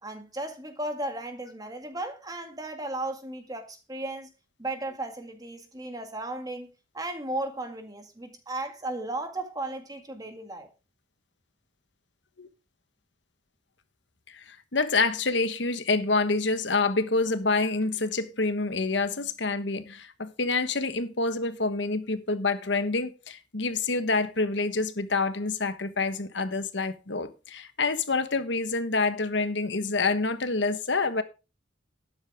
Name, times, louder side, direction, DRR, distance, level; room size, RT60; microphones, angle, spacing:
voice 1, 0.0-4.3 4.6-10.7, right 2 dB, 20° right, 1.9 m, -35 dB
voice 2, 14.3-31.2, left 3 dB, 65° left, 1.3 m, -27 dB
12.5 x 10.0 x 3.6 m
head